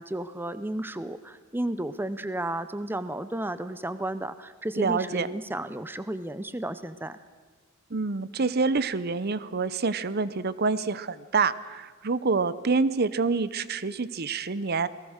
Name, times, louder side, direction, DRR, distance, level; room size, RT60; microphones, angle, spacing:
voice 1, 0.0-7.2, right 1 dB, 10° right, 13 dB, 0.6 m, -33 dB
voice 2, 4.8-5.3 7.9-14.9, right 4 dB, 50° right, 16 dB, 0.7 m, -27 dB
28.0 x 19.0 x 6.5 m, 1.4 s
head